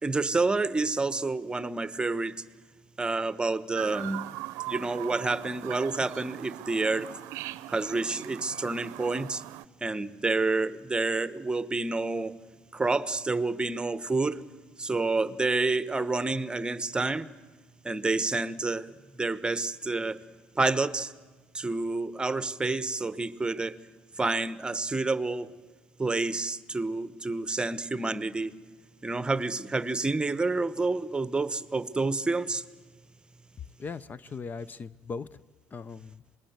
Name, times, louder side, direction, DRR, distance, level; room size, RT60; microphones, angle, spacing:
voice 1, 0.0-2.4 3.0-4.2 4.7-7.1 7.7-9.4 9.8-12.3 12.7-14.5 14.8-17.3 17.8-20.2 20.5-21.1 21.5-23.8 24.2-25.6 26.0-28.5 29.0-32.6, right 3 dB, 20° right, 1.1 m, -29 dB
Chirp tweet, 3.8-9.6, right 17 dB, 75° right, 0.7 m, -40 dB
voice 2, 33.8-35.3 35.7-36.2, left 5 dB, 35° left, 0.7 m, -38 dB
26.5 x 20.0 x 8.1 m
supercardioid pair, 75°, 5 cm